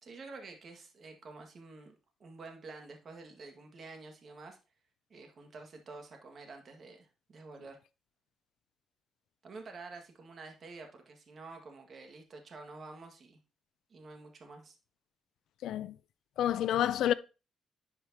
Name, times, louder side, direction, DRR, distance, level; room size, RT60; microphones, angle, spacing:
voice 1, 0.0-4.6 5.1-7.8 9.4-13.4 13.9-14.8, right 3 dB, 50° right, 1.8 m, -49 dB
voice 2, 15.6-16.0 16.4-17.1, left 11 dB, 80° left, 0.4 m, -29 dB
10.5 x 4.9 x 2.8 m
cardioid pair, 90°, 0 cm